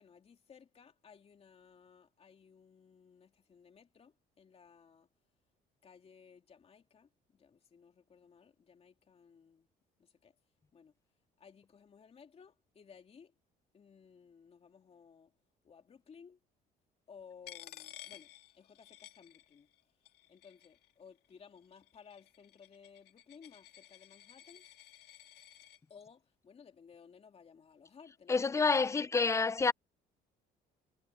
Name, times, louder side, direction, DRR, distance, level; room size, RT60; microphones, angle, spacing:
voice 1, 0.0-5.1 5.8-9.7 10.0-10.3 10.7-10.9 11.4-13.3 13.7-15.3 15.6-16.4 17.1-19.7 20.3-24.7 25.9-29.3, left 6 dB, 35° left, 3.1 m, -58 dB
Coin (dropping), 17.5-19.8 20.1-20.9 21.6-25.8, left 12 dB, 75° left, 2.2 m, -54 dB
voice 2, 28.3-29.7, left 4 dB, 15° left, 0.4 m, -28 dB
cardioid pair, 110°, 17 cm